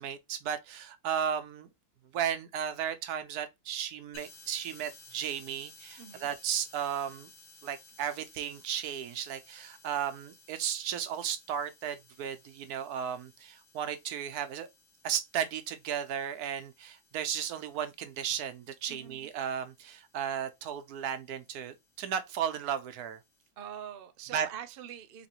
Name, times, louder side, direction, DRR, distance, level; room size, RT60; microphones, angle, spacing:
voice 1, 0.0-1.7 2.1-7.3 7.6-14.7 15.0-23.2 24.3-24.5, right 9 dB, 75° right, 1.1 m, -35 dB
sound 1, 4.1-23.5, left 3 dB, 50° left, 1.4 m, -58 dB
voice 2, 23.6-25.3, right 9 dB, 60° right, 0.6 m, -44 dB
4.0 x 3.0 x 2.9 m
omnidirectional pair, 1.6 m